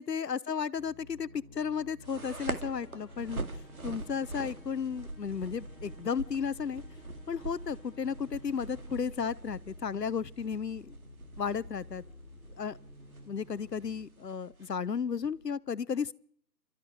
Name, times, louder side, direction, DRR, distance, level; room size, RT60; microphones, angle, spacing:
voice 1, 0.0-6.8 7.3-10.9 11.4-12.0 12.6-12.8 13.3-16.1, left 6 dB, 70° left, 1.0 m, -34 dB
sound 1, 0.7-14.1, left 2 dB, ahead, 1.5 m, -53 dB
sound 2, 2.0-15.5, right 3 dB, 60° right, 2.2 m, -44 dB
sound 3, 2.3-10.7, left 2 dB, 35° left, 6.9 m, -59 dB
29.0 x 13.0 x 8.0 m
figure-of-eight pair, 170°, 50 cm